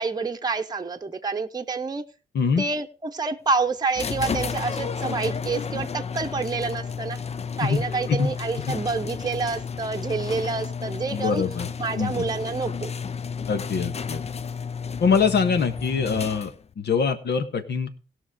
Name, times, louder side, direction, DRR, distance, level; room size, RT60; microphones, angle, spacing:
voice 1, 0.0-2.0 2.6-7.2 7.6-11.4 11.8-12.9, right 4 dB, 20° right, 4 dB, 0.9 m, -28 dB
voice 2, 2.3-2.6 7.6-7.8 8.1-8.3 8.7-8.8 11.1-11.7 12.0-12.1 13.5-14.2 15.0-17.9, left 5 dB, 70° left, 9 dB, 1.5 m, -23 dB
sound 1, 4.0-16.7, left 6 dB, 35° left, 0.5 m, -32 dB
16.5 x 6.0 x 5.0 m, 0.35 s
cardioid pair, 65°, 18 cm